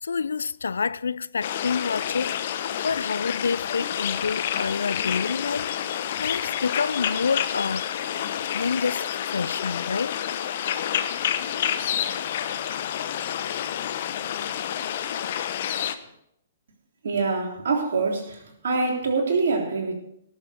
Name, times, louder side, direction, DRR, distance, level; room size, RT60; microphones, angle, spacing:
voice 1, 0.0-5.9 6.2-7.9 8.5-10.2, left 5 dB, 75° left, 0.4 m, -28 dB
sound 1, 1.4-15.9, left 10 dB, 50° left, 1.0 m, -29 dB
voice 2, 17.0-20.0, right 4 dB, 60° right, 3.4 m, -25 dB
18.0 x 7.3 x 5.1 m
figure-of-eight pair, 120°, 0 cm